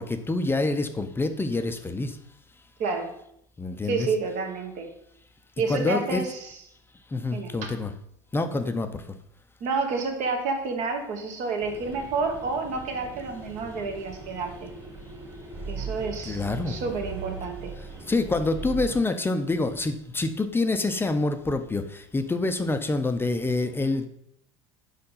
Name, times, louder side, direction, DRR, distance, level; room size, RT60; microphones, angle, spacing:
voice 1, 0.0-2.2 3.6-4.1 5.7-6.2 7.1-7.9 8.3-9.0 16.3-16.8 18.0-24.1, left 2 dB, 15° left, 8 dB, 0.6 m, -27 dB
voice 2, 2.8-3.1 3.8-4.9 5.6-6.5 7.3-7.7 9.6-14.7 15.7-17.7, right 4 dB, 55° right, 4 dB, 1.5 m, -30 dB
sound 1, 11.6-19.0, right 4 dB, 30° right, 2.4 m, -39 dB
5.1 x 4.3 x 5.6 m, 0.72 s
hypercardioid pair, 75°, 15 cm